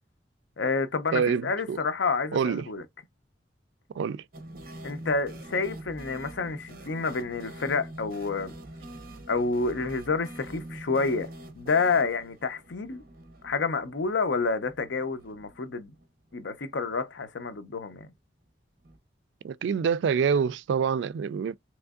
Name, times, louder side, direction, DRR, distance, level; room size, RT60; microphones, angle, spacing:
voice 1, 0.6-2.8 4.8-8.5 9.3-11.3 11.5-13.0 13.4-15.9 16.3-18.1, left 4 dB, 85° left, 0.6 m, -29 dB
voice 2, 1.1-1.8 2.3-2.7 4.0-4.2 19.4-21.6, right 6 dB, 85° right, 0.3 m, -26 dB
sound 1, 4.3-16.1 16.3-16.4 16.7-16.8 18.8-19.0, right 1 dB, 50° right, 0.8 m, -45 dB
3.5 x 3.1 x 2.3 m
head